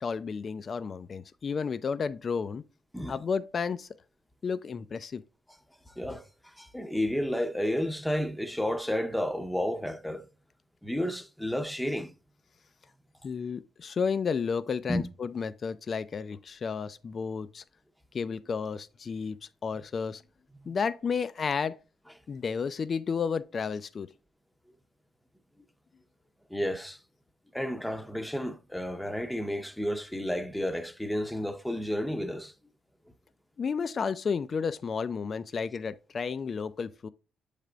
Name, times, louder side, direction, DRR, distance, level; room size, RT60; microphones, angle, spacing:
voice 1, 0.0-2.6 3.1-3.9 4.4-5.2 13.2-17.6 18.1-19.4 19.6-20.2 20.7-21.8 22.3-24.1 33.6-37.1, left 5 dB, 45° left, 0.3 m, -32 dB
voice 2, 5.9-10.3 10.8-12.1 14.9-15.0 26.5-27.0 27.5-32.5, equal, 5° left, 0.7 m, -31 dB
7.3 x 3.4 x 3.8 m
cardioid pair, 90°, 0 cm